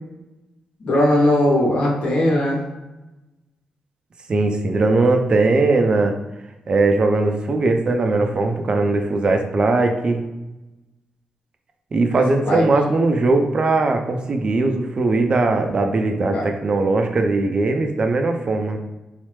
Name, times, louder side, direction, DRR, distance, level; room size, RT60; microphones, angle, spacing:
voice 1, 0.8-2.6 12.1-12.6 16.3-16.4, left 1 dB, 65° left, -4 dB, 1.0 m, -19 dB
voice 2, 4.3-6.1 6.7-10.2 11.9-18.8, right 3 dB, 45° right, 4 dB, 0.4 m, -19 dB
3.2 x 2.0 x 3.1 m, 1.0 s
cardioid pair, 75°, 2 cm